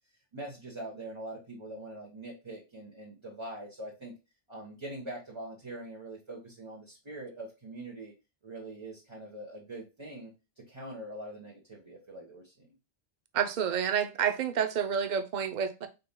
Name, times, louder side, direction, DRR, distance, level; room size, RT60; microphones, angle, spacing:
voice 1, 0.3-4.1 4.5-8.1 8.4-12.7, right 1 dB, 30° right, 1.1 m, -43 dB
voice 2, 13.3-15.9, right 8 dB, 50° right, 0.7 m, -29 dB
5.3 x 4.2 x 2.2 m
omnidirectional pair, 1.1 m